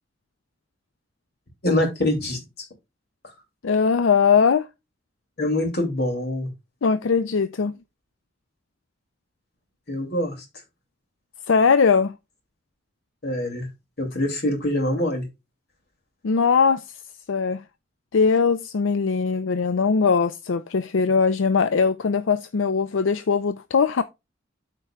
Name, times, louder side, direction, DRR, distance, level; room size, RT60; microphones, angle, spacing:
voice 1, 1.6-2.4 5.4-6.5 9.9-10.4 13.2-13.7 14.0-15.3, left 1 dB, 55° left, 2.9 m, -24 dB
voice 2, 3.6-4.7 6.8-7.7 11.5-12.1 16.2-16.8 17.3-17.6 18.1-24.0, left 5 dB, 80° left, 0.5 m, -20 dB
13.5 x 4.5 x 2.4 m
head